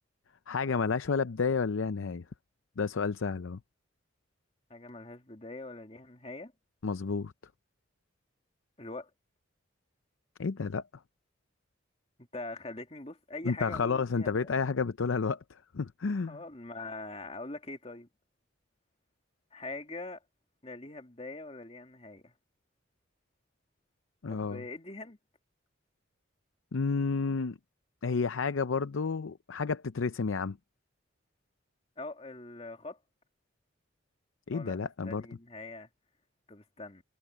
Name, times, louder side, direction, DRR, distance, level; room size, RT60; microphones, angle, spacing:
voice 1, 0.5-2.2 2.8-3.6 6.8-7.3 10.4-10.8 13.4-16.4 24.2-24.6 26.7-27.6 28.0-30.6 34.5-35.2, left 5 dB, 80° left, 0.6 m, -31 dB
voice 2, 4.7-6.5 8.8-9.1 12.3-14.5 16.3-18.1 19.5-20.2 20.6-22.3 24.3-25.2 32.0-33.0 34.5-35.9 36.5-37.0, left 2 dB, 30° left, 2.5 m, -43 dB
head